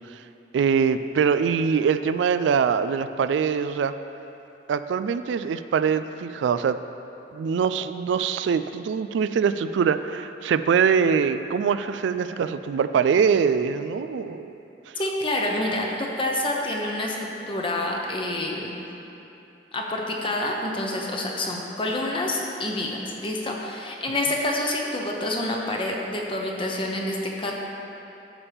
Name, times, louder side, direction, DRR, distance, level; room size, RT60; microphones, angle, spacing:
voice 1, 0.5-3.9 4.7-6.8 7.3-14.5, right 6 dB, 80° right, 12 dB, 0.3 m, -23 dB
voice 2, 15.0-18.8 19.7-27.5, left 1 dB, 30° left, -1 dB, 0.9 m, -27 dB
11.0 x 7.2 x 3.5 m, 2.9 s
head